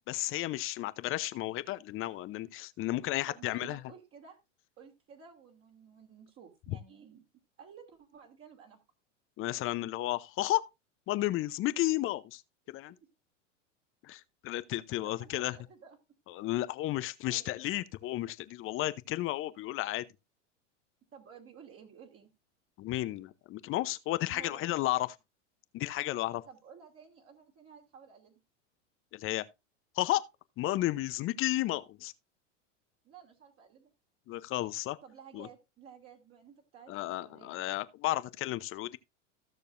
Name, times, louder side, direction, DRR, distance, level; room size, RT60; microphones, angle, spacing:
voice 1, 0.1-3.8 6.7-6.8 9.4-10.6 11.1-12.4 12.7-12.9 14.0-15.6 16.3-20.1 22.8-25.1 25.7-26.4 29.1-29.5 30.0-30.2 30.6-32.1 34.3-35.0 35.3-35.5 36.9-39.0, left 16 dB, 35° left, 0.7 m, -33 dB
voice 2, 3.3-4.4 4.8-7.2 7.6-8.8 15.0-16.0 17.3-17.4 21.1-22.3 24.3-24.6 26.1-28.4 33.0-33.9 35.0-37.6, right 7 dB, 35° right, 2.5 m, -54 dB
15.5 x 6.6 x 2.5 m
hypercardioid pair, 100°, 37 cm